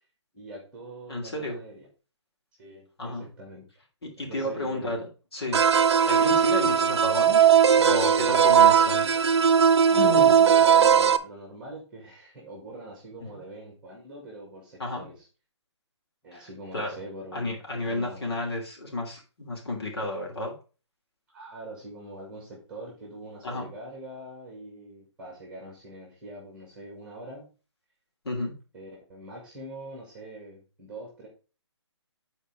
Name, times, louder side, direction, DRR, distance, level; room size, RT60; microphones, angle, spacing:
voice 1, 0.3-1.9 2.6-3.7 4.2-5.0 9.8-15.3 16.2-17.5 17.8-18.3 21.3-27.5 28.7-31.3, right 1 dB, 5° right, -2 dB, 2.0 m, -43 dB
voice 2, 1.1-1.6 3.0-3.2 4.0-5.1 5.3-5.6 6.1-9.1 9.9-10.3 14.8-15.0 16.3-16.4 16.7-17.0 17.3-20.5 23.4-23.7 28.2-28.5, left 2 dB, 60° left, 0 dB, 3.2 m, -32 dB
sound 1, 5.5-11.2, right 8 dB, 65° right, 0.7 m, -19 dB
8.6 x 4.5 x 4.8 m, 0.34 s
hypercardioid pair, 170°, 15 cm